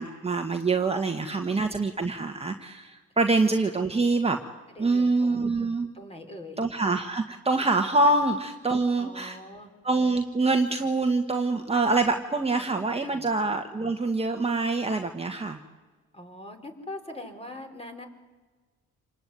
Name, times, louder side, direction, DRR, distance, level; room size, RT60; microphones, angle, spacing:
voice 1, 0.0-4.4 4.8-5.9 6.6-9.4 9.8-15.6, right 3 dB, 20° right, 4 dB, 1.6 m, -25 dB
voice 2, 4.7-5.5 5.9-6.6 7.3-7.4 9.0-9.7 13.0-13.3 16.1-18.1, left 1 dB, 20° left, 4 dB, 4.6 m, -43 dB
27.5 x 19.5 x 9.5 m, 1.4 s
cardioid pair, 90°, 30 cm